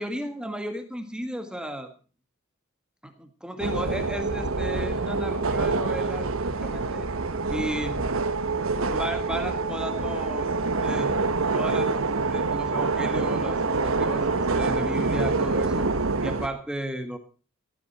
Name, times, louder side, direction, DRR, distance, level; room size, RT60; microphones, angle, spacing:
voice 1, 0.0-1.9 3.0-6.3 6.6-7.1 7.5-8.0 8.9-11.2 11.5-15.9 16.2-17.2, equal, 5° right, 7 dB, 1.7 m, -34 dB
sound 1, 3.6-16.5, right 3 dB, 75° right, 1.3 m, -26 dB
17.0 x 13.5 x 4.3 m, 0.37 s
head